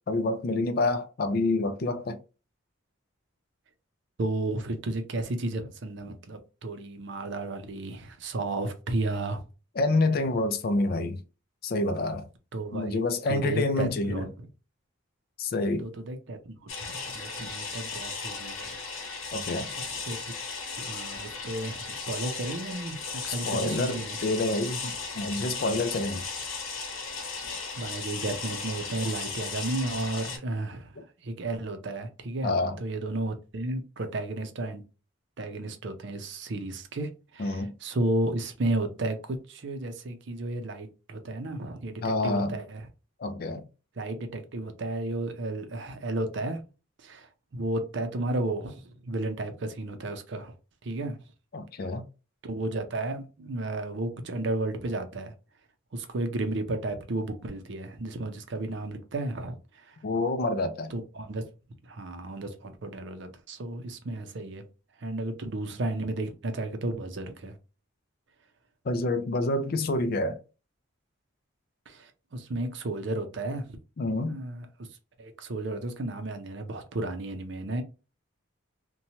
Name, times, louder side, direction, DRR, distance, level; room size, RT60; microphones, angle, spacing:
voice 1, 0.1-2.2 9.8-11.2 11.6-12.3 12.7-14.2 15.4-15.9 19.3-19.7 23.3-26.2 32.4-32.8 37.4-37.7 42.0-42.6 43.2-43.6 51.5-52.1 60.0-60.9 68.9-70.4 74.0-74.4, left 2 dB, 45° left, 0.4 m, -28 dB
voice 2, 4.2-9.4 12.5-13.0 13.3-14.3 15.8-18.6 19.8-20.3 20.8-24.2 27.8-32.5 32.8-34.8 35.4-42.9 44.0-46.6 47.0-50.5 50.8-51.2 52.4-55.3 55.9-60.0 60.9-61.5 61.8-64.6 65.0-67.6 71.9-73.8 74.3-74.9 75.2-77.8, right 2 dB, 55° right, 0.5 m, -33 dB
sound 1, 16.7-30.4, left 4 dB, 75° left, 0.8 m, -36 dB
2.8 x 2.2 x 2.8 m
head